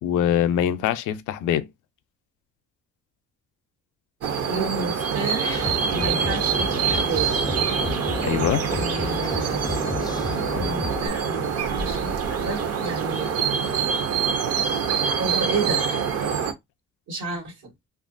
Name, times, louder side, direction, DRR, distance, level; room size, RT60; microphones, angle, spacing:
voice 1, 0.0-1.7 8.2-8.6, left 10 dB, 90° left, 0.5 m, -23 dB
sound 1, 4.2-16.5, right 6 dB, 55° right, 0.6 m, -25 dB
voice 2, 4.5-7.3 8.7-9.7 10.5-13.3 15.2-16.0 17.1-17.5, right 3 dB, 80° right, 1.3 m, -31 dB
sound 2, 5.5-11.1, left 3 dB, 15° left, 0.4 m, -31 dB
2.9 x 2.4 x 2.5 m
cardioid pair, 90°, 30 cm